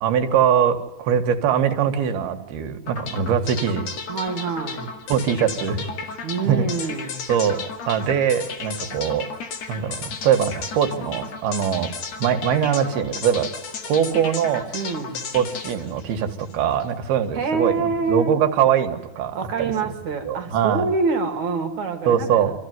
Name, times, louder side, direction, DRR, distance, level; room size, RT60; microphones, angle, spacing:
voice 1, 0.0-3.9 5.1-5.8 6.5-6.7 7.3-9.3 9.7-11.9 12.2-13.5 13.9-14.7 15.3-19.7 20.2-20.9 22.1-22.5, right 8 dB, 80° right, 6 dB, 3.5 m, -22 dB
sound 1, 2.9-17.0, left 5 dB, 50° left, 2.7 m, -34 dB
voice 2, 4.1-4.9 6.2-7.2 14.7-15.3 17.3-18.4 19.3-22.4, right 4 dB, 55° right, 5 dB, 3.4 m, -26 dB
27.0 x 14.5 x 9.5 m, 1.0 s
omnidirectional pair, 4.4 m